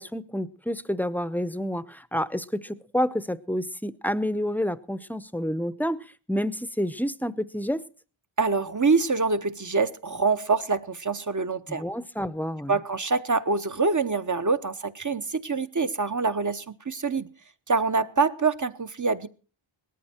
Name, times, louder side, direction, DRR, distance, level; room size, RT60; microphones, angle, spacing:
voice 1, 0.0-7.8 11.7-12.8, equal, 5° left, 0.7 m, -29 dB
voice 2, 8.4-11.8 12.7-17.3 17.7-19.3, right 4 dB, 35° right, 0.9 m, -25 dB
18.5 x 13.5 x 4.4 m
wide cardioid pair, 75°, 49 cm